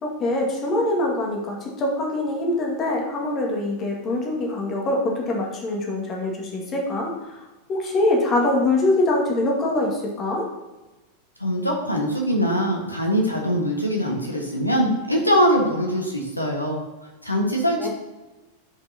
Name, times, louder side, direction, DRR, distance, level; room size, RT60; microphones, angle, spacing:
voice 1, 0.0-7.4 7.7-10.5 17.8-17.9, left 2 dB, 30° left, -1 dB, 1.9 m, -24 dB
voice 2, 11.4-16.8 17.2-17.9, equal, 85° left, 0 dB, 1.4 m, -22 dB
11.5 x 5.3 x 2.8 m, 1.1 s
figure-of-eight pair, 90°, 0 cm